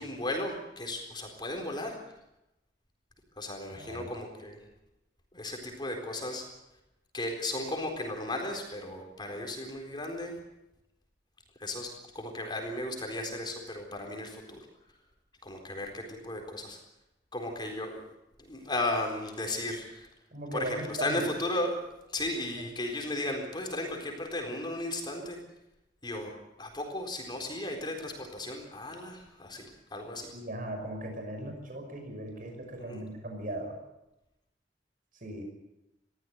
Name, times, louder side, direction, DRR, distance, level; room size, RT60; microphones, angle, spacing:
voice 1, 0.0-2.0 3.4-4.6 5.3-6.5 7.1-10.3 11.6-11.9 12.1-14.6 15.4-16.8 17.3-18.0 18.4-20.1 20.5-21.8 22.1-25.4 26.0-26.3 26.6-30.3 32.9-33.0, left 1 dB, 25° left, 2 dB, 4.1 m, -35 dB
voice 2, 3.7-4.1 20.3-21.2 30.3-33.8 35.1-35.4, right 1 dB, 50° right, 4 dB, 5.8 m, -38 dB
21.5 x 15.0 x 9.3 m, 0.91 s
head